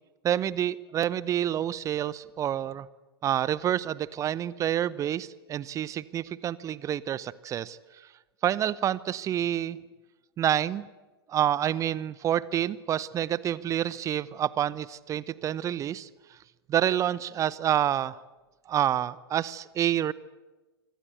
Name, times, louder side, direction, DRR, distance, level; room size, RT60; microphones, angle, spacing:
voice 1, 0.2-2.9 3.2-8.1 8.4-9.8 10.4-10.9 11.3-16.4 16.7-18.2 18.7-20.1, right 10 dB, 25° right, 20 dB, 0.8 m, -28 dB
26.0 x 24.5 x 8.2 m, 1.2 s
figure-of-eight pair, 90°, 13 cm